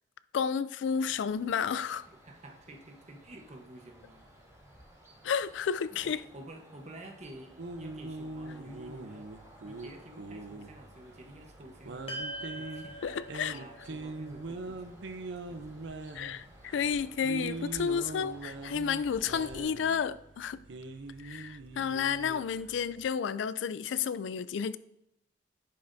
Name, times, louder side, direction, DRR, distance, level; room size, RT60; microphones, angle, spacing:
voice 1, 0.3-2.1 5.2-6.2 13.0-13.6 16.1-20.6 21.2-24.8, left 7 dB, 75° left, 0.3 m, -31 dB
sound 1, 0.8-19.6, equal, 15° right, 2.0 m, -56 dB
voice 2, 2.1-4.2 5.9-9.3 9.6-12.2 12.6-13.0 13.5-15.2 15.5-15.7 21.8-21.9, right 1 dB, 35° right, 1.0 m, -50 dB
sound 2, 7.6-23.1, right 2 dB, 70° right, 0.6 m, -42 dB
sound 3, 12.1-16.5, right 1 dB, 30° left, 0.9 m, -45 dB
10.0 x 5.6 x 2.6 m
head